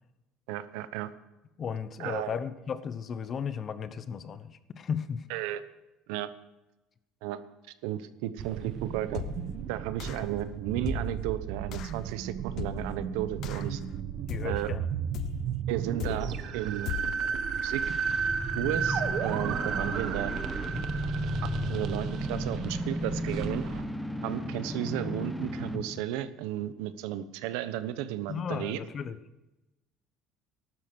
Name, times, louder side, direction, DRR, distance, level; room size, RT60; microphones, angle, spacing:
voice 1, 0.5-1.1 2.0-2.4 5.3-5.6 6.1-6.3 7.2-7.4 7.8-9.2 9.7-13.8 14.4-14.7 15.7-16.9 17.6-17.8 18.6-20.3 21.4-23.6 24.2-28.8, right 12 dB, 85° right, 13 dB, 1.0 m, -34 dB
voice 2, 1.6-5.2 14.3-14.9 28.3-29.2, left 7 dB, 35° left, 13 dB, 1.0 m, -35 dB
sound 1, 8.4-23.8, right 7 dB, 55° right, 1.2 m, -34 dB
sound 2, 9.1-9.6 10.0-10.4 10.9-11.3 11.7-12.0 12.6-13.0 13.4-13.8 14.3-14.7 15.1-15.6 16.0-16.4 16.9-17.3, left 13 dB, 55° left, 0.5 m, -38 dB
sound 3, 17.4-26.0, equal, ahead, 1.0 m, -34 dB
14.0 x 12.0 x 6.2 m, 0.98 s
cardioid pair, 130°, 0 cm